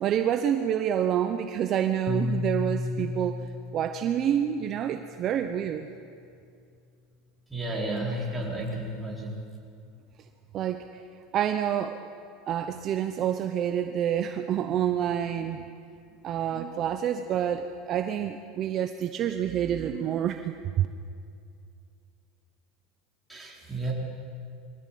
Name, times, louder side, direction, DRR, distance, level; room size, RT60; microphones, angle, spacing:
voice 1, 0.0-5.9 10.5-11.0 11.3-12.0 12.5-15.6 16.2-20.9, right 9 dB, 35° right, 7 dB, 0.8 m, -28 dB
Piano, 2.1-6.5, left 3 dB, 20° left, 1.2 m, -34 dB
voice 2, 7.5-9.4 23.3-23.9, right 1 dB, 5° right, -5 dB, 4.7 m, -32 dB
23.0 x 16.0 x 7.7 m, 2.4 s
supercardioid pair, 150°, 0 cm